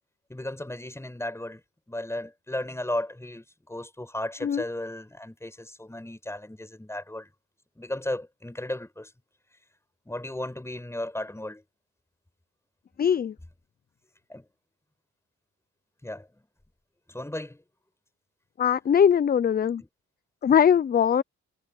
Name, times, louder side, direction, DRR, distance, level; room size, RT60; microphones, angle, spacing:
voice 1, 0.3-1.6 1.9-7.3 7.8-9.1 10.1-11.6 14.3-14.5 16.0-16.3 17.1-17.6 19.8-19.9 20.5-20.6, left 1 dB, 10° left, 7.8 m, -35 dB
voice 2, 13.0-13.3 18.6-19.8 20.4-21.2, left 8 dB, 30° left, 0.5 m, -21 dB
cardioid pair, 90°, 30 cm